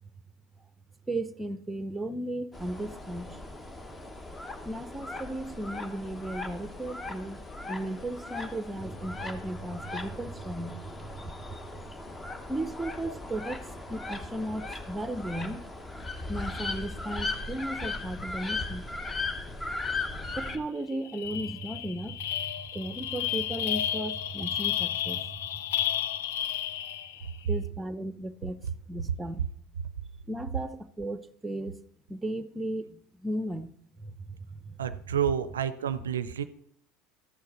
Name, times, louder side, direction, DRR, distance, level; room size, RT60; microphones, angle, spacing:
voice 1, 1.1-3.4 4.6-11.8 12.3-15.6 16.3-18.9 20.4-25.6 27.4-28.6 28.9-29.5 30.3-31.8 32.1-34.9, right 1 dB, 10° right, 0.7 m, -36 dB
sound 1, 2.5-20.6, left 3 dB, 20° left, 1.0 m, -38 dB
sound 2, 20.4-20.6 20.9-27.3, left 11 dB, 75° left, 0.4 m, -32 dB
voice 2, 34.8-36.4, right 8 dB, 85° right, 0.4 m, -29 dB
13.5 x 6.5 x 4.1 m
hypercardioid pair, 75°, 0 cm